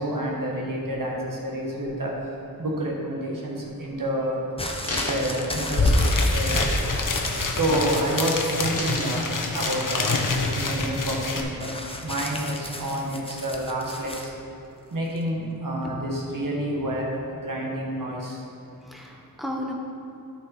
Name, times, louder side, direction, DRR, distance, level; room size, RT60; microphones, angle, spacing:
voice 1, 0.0-4.4 4.8-6.0 6.3-6.8 7.5-14.3 14.9-18.5, right 1 dB, 65° right, -2 dB, 1.8 m, -29 dB
sound 1, 4.0-4.1 4.6-6.7 7.1-7.3 7.6-8.2 8.5-10.2 10.8-10.9, left 2 dB, 40° left, 1.5 m, -36 dB
sound 2, 4.6-8.7 9.0-9.6 11.6-14.3 15.2-15.3, left 1 dB, 15° left, 0.8 m, -33 dB
sound 3, 5.4-5.5 5.7-11.4, left 2 dB, 60° left, 1.0 m, -25 dB
voice 2, 7.7-8.1 18.8-19.7, left 1 dB, ahead, -1 dB, 1.2 m, -35 dB
12.5 x 5.5 x 4.4 m, 2.9 s
wide cardioid pair, 85°, 36 cm